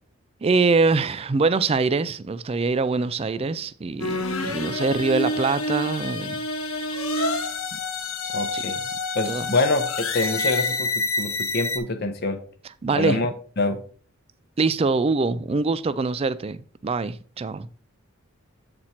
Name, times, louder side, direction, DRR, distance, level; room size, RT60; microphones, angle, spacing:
voice 1, 0.4-6.4 8.5-8.6 9.3-9.6 12.8-13.2 14.6-17.7, right 4 dB, 30° right, 0.3 m, -24 dB
sound 1, 4.0-11.8, left 2 dB, 85° left, 1.2 m, -27 dB
voice 2, 8.3-8.8 9.1-12.4 12.9-13.3 13.6-13.8, left 2 dB, 50° left, 0.8 m, -25 dB
7.7 x 4.3 x 4.3 m
head